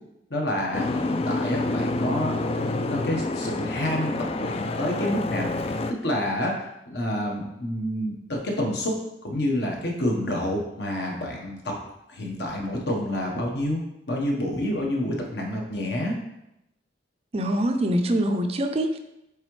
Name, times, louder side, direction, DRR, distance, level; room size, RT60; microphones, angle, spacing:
voice 1, 0.3-11.8 12.1-13.8 14.1-16.1, left 1 dB, 60° left, 0 dB, 1.2 m, -28 dB
Boat Water vehicle, 0.7-5.9, left 2 dB, 30° left, 0.3 m, -28 dB
voice 2, 17.3-19.0, right 1 dB, 35° right, 6 dB, 0.5 m, -24 dB
8.2 x 3.6 x 3.2 m, 0.86 s
head